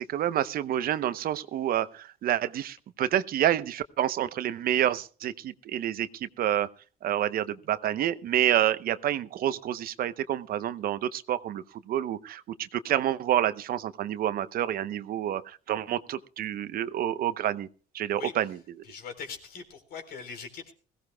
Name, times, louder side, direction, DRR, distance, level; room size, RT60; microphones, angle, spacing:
voice 1, 0.0-6.7 7.0-12.4 12.7-17.7 17.9-18.6, right 11 dB, 60° right, 14 dB, 0.8 m, -28 dB
voice 2, 18.8-20.7, left 6 dB, 65° left, 6 dB, 3.8 m, -41 dB
21.0 x 16.5 x 2.2 m, 0.38 s
cardioid pair, 110°, 17 cm